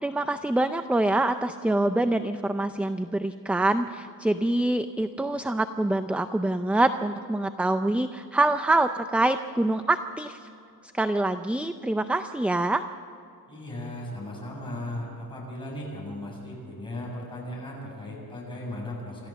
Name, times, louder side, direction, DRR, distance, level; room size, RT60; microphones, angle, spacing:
voice 1, 0.0-10.5 10.9-12.8, right 2 dB, 5° right, 9 dB, 0.4 m, -25 dB
voice 2, 13.5-19.3, left 1 dB, 15° left, -3 dB, 7.4 m, -37 dB
27.0 x 14.0 x 7.5 m, 2.6 s
wide cardioid pair, 145°, 36 cm